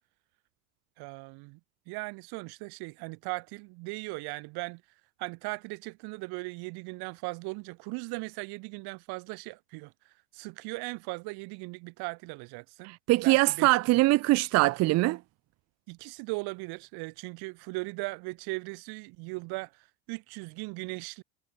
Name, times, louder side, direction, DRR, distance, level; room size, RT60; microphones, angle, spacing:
voice 1, 1.0-1.6 1.9-4.8 5.2-9.9 10.3-12.9 13.2-13.8 15.9-21.2, right 27 dB, 60° right, 6.6 m, -38 dB
voice 2, 13.1-15.2, right 20 dB, 40° right, 0.6 m, -22 dB
hypercardioid pair, 100°, 42 cm